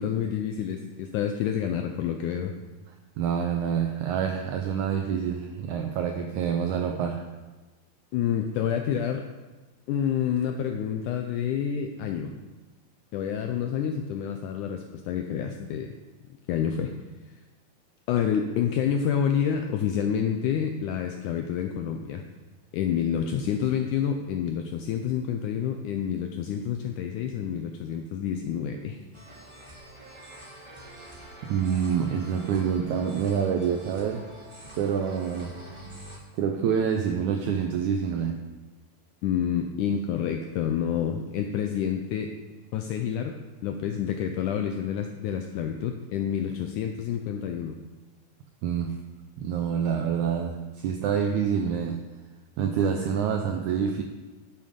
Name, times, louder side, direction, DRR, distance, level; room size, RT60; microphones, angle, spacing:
voice 1, 0.0-2.5 8.1-9.3 9.9-12.3 13.1-15.9 16.5-16.9 18.1-22.2 22.7-29.0 39.2-42.3 42.7-43.4 43.6-47.8, left 8 dB, 85° left, 5 dB, 1.8 m, -28 dB
voice 2, 3.2-7.3 31.4-34.2 34.7-35.6 36.3-38.4 48.6-49.0 49.4-52.0 52.6-54.0, right 7 dB, 85° right, 5 dB, 1.7 m, -27 dB
sound 1, 29.1-36.2, right 1 dB, 20° right, 0.8 m, -45 dB
10.5 x 7.5 x 5.1 m, 1.2 s
omnidirectional pair, 4.2 m